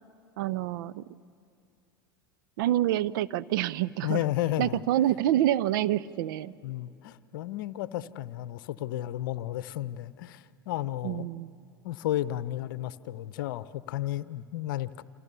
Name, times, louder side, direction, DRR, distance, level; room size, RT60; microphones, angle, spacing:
voice 1, 0.4-1.0 2.6-4.2 4.6-6.5 11.0-11.5, right 13 dB, 65° right, 19 dB, 0.6 m, -27 dB
voice 2, 4.0-4.8 6.6-11.3 11.8-15.0, left 14 dB, 65° left, 17 dB, 0.8 m, -33 dB
28.5 x 27.0 x 6.9 m, 2.4 s
hypercardioid pair, 85°, 12 cm